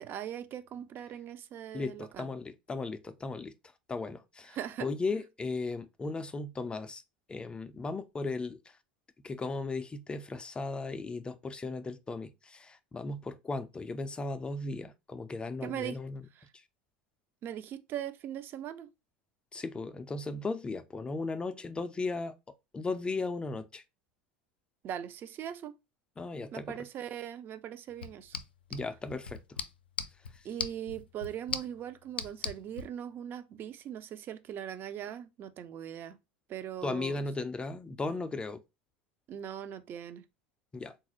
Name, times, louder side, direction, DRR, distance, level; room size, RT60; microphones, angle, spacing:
voice 1, 0.0-2.3 4.5-4.9 15.6-16.0 17.4-18.9 24.8-25.7 26.5-28.4 30.4-36.2 36.5-37.2 39.3-40.2, right 10 dB, 40° right, 0.5 m, -40 dB
voice 2, 1.7-3.5 3.9-7.0 7.3-8.8 9.2-16.2 19.5-22.4 22.7-23.8 26.2-26.8 28.7-29.6 30.3-30.5 36.8-38.6 40.7-41.0, left 3 dB, 20° left, 0.3 m, -36 dB
sound 1, 27.9-32.9, left 6 dB, 85° left, 0.4 m, -41 dB
3.7 x 2.3 x 3.0 m
hypercardioid pair, 85°, 5 cm